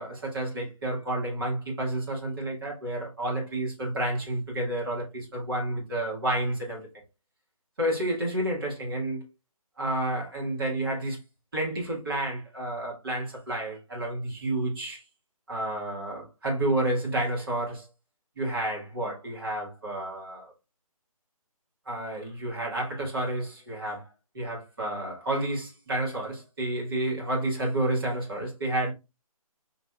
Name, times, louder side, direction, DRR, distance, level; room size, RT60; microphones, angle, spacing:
voice 1, 0.0-6.8 7.8-9.2 9.8-11.2 11.5-15.0 15.5-17.9 18.4-20.5 21.8-24.1 24.3-28.9, right 1 dB, 35° right, 1.6 m, -30 dB
5.8 x 2.8 x 2.3 m
hypercardioid pair, 180°, 19 cm